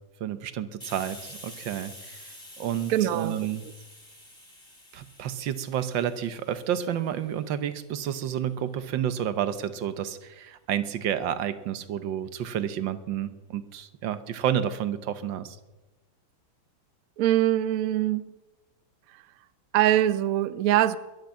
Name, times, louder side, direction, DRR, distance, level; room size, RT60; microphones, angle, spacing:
voice 1, 0.2-2.2 2.6-3.6 4.9-15.6, right 10 dB, 65° right, 1.5 m, -30 dB
Hiss, 0.8-8.2, left 1 dB, 10° left, 3.4 m, -48 dB
voice 2, 2.9-3.5 17.2-18.2 19.7-21.0, right 13 dB, 85° right, 0.7 m, -23 dB
22.0 x 7.9 x 7.4 m
omnidirectional pair, 2.4 m